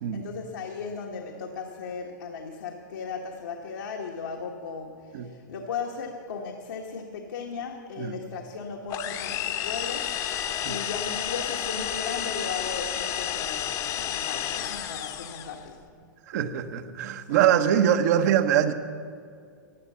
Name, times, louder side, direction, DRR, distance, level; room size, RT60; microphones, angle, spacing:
voice 1, 0.1-15.8 17.3-17.4, left 5 dB, 75° left, 0 dB, 1.5 m, -36 dB
sound 1, 8.9-15.6, left 10 dB, 35° left, 0.9 m, -31 dB
voice 2, 16.3-18.7, right 9 dB, 60° right, 8 dB, 1.1 m, -23 dB
16.0 x 10.5 x 6.9 m, 2.2 s
hypercardioid pair, 125°, 10 cm